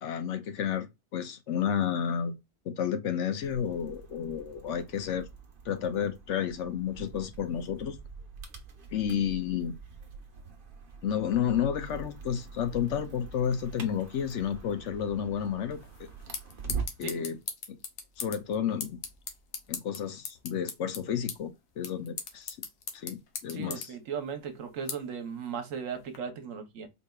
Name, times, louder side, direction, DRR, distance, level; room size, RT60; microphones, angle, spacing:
voice 1, 0.0-2.3 2.7-5.3 5.7-8.0 8.9-9.7 11.0-15.8 17.0-17.4 18.2-19.0 19.7-22.6 22.9-23.9, left 8 dB, 65° left, 0.9 m, -31 dB
sound 1, 3.4-17.1, right 5 dB, 45° right, 0.9 m, -44 dB
sound 2, 15.7-26.2, left 6 dB, 80° left, 1.2 m, -42 dB
voice 2, 23.5-26.9, right 6 dB, 70° right, 1.2 m, -37 dB
4.4 x 3.3 x 2.2 m
omnidirectional pair, 1.4 m